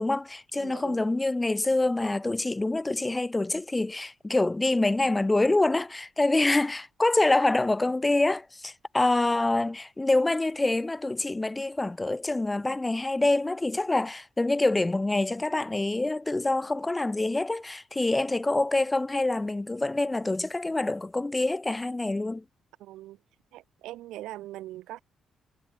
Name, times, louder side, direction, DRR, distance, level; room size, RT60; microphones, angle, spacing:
voice 1, 0.0-22.4, left 2 dB, 15° left, 0.4 m, -26 dB
voice 2, 0.5-1.2 6.4-6.6 22.8-23.2 23.5-25.0, right 15 dB, 90° right, 1.0 m, -42 dB
cardioid pair, 90°, 0 cm